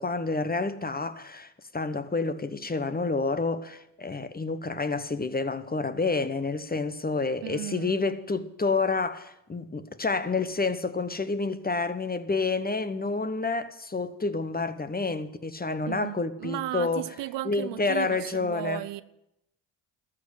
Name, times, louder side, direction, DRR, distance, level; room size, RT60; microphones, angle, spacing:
voice 1, 0.0-17.0 17.4-18.8, left 3 dB, 20° left, 1.1 m, -29 dB
voice 2, 7.4-8.0 15.9-19.0, right 16 dB, 65° right, 0.6 m, -35 dB
13.5 x 6.4 x 9.8 m
hypercardioid pair, 50°, 47 cm